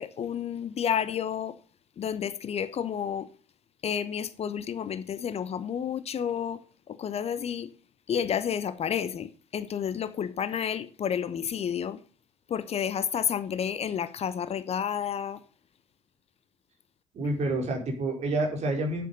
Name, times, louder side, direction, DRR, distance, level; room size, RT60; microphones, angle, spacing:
voice 1, 0.0-1.6 2.0-3.3 3.8-7.7 8.1-12.0 12.5-15.4, left 8 dB, 40° left, 0.9 m, -30 dB
voice 2, 17.1-19.1, right 2 dB, 40° right, 4.5 m, -28 dB
9.5 x 9.0 x 5.4 m
figure-of-eight pair, 55°, 17 cm